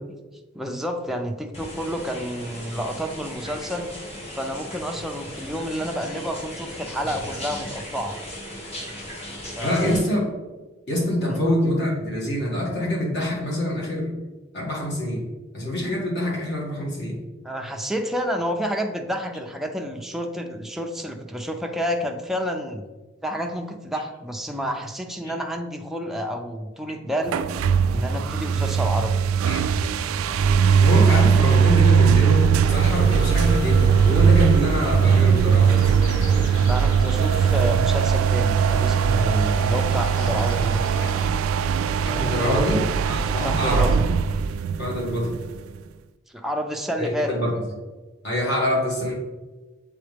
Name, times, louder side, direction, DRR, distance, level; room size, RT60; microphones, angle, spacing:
voice 1, 0.5-3.9 4.4-8.2 9.4-10.0 11.2-11.4 17.4-22.8 23.2-27.4 27.9-29.1 36.6-40.8 42.5-42.9 43.4-43.9 46.3-47.3, equal, ahead, 2 dB, 0.5 m, -29 dB
sound 1, 1.5-10.0, equal, 30° left, 1.4 m, -37 dB
voice 2, 9.6-10.3 10.9-14.1 14.5-15.2 15.5-17.2 25.2-25.3 29.4-29.7 30.8-35.7 41.0-41.1 42.0-43.9 44.8-45.4 47.0-47.5 48.2-49.1, left 1 dB, 55° left, -3 dB, 1.9 m, -25 dB
sound 2, 27.3-45.8, right 7 dB, 75° right, 0.3 m, -20 dB
sound 3, 32.6-41.3, equal, 75° left, 1.4 m, -37 dB
7.5 x 3.8 x 3.4 m, 1.2 s
head